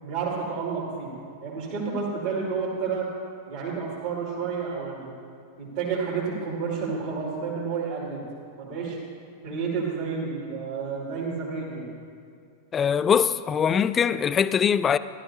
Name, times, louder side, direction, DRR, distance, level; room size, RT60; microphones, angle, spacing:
voice 1, 0.0-1.1 1.4-3.1 3.5-5.1 5.6-8.3 8.6-9.0 9.4-11.9, right 5 dB, 50° right, 2.7 m, -30 dB
voice 2, 12.7-15.0, left 7 dB, 25° left, 0.3 m, -22 dB
15.0 x 12.0 x 2.8 m
figure-of-eight pair, 90°, 0 cm